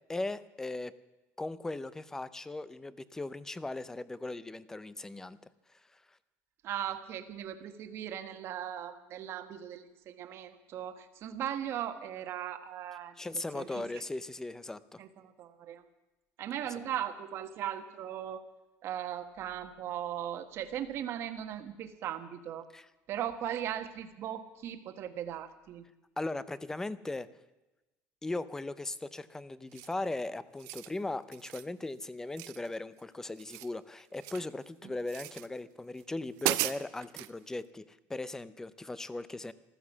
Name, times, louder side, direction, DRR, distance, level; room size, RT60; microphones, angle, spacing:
voice 1, 0.1-0.9 1.4-5.4 5.7-5.8 13.2-15.0 22.7-22.9 26.2-27.3 28.2-39.5, left 2 dB, 10° left, 16 dB, 0.6 m, -38 dB
voice 2, 6.6-13.2 13.5-13.9 15.0-15.8 16.4-18.4 18.8-22.7 23.1-25.8 34.8-34.9, right 10 dB, 50° right, 8 dB, 1.3 m, -38 dB
sound 1, 29.7-30.1 30.5-30.9 31.3-31.7 32.4-33.0 33.3-34.5 35.1-35.5 36.0-36.1 36.4-37.3, right 18 dB, 85° right, 0.6 m, -36 dB
14.5 x 13.5 x 7.2 m, 1.0 s
cardioid pair, 150°, 5 cm